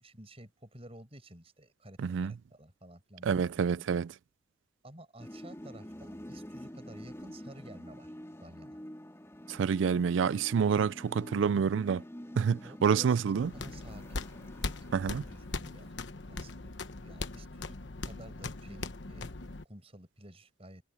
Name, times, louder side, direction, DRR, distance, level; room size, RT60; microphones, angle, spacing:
voice 1, 0.0-3.4 3.7-3.9 4.8-8.1 8.4-8.8 11.4-11.7 12.6-14.3 14.6-15.9 16.3-16.7 17.0-17.8 18.0-19.3 19.6-20.8, right 1 dB, 30° right, 6.2 m, -51 dB
voice 2, 2.0-2.3 3.2-4.1 9.5-12.0 12.4-13.5 14.9-15.2, right 6 dB, 80° right, 0.4 m, -28 dB
sound 1, 5.2-15.9, equal, 15° left, 3.0 m, -47 dB
sound 2, 13.4-19.6, left 3 dB, 70° left, 1.1 m, -40 dB
head